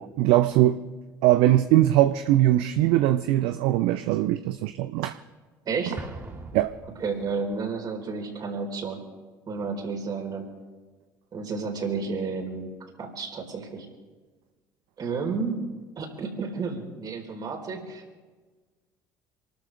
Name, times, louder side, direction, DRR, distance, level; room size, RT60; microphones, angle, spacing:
voice 1, 0.2-0.8 1.2-5.2 6.5-6.7, right 14 dB, 60° right, 0.6 m, -21 dB
voice 2, 5.6-6.0 7.0-9.0 9.5-10.5 11.3-13.9 15.0-18.0, right 4 dB, 40° right, 4.3 m, -31 dB
Explosion, 6.0-7.6, right 2 dB, 25° right, 2.2 m, -41 dB
28.0 x 13.0 x 3.4 m
figure-of-eight pair, 60°, 10 cm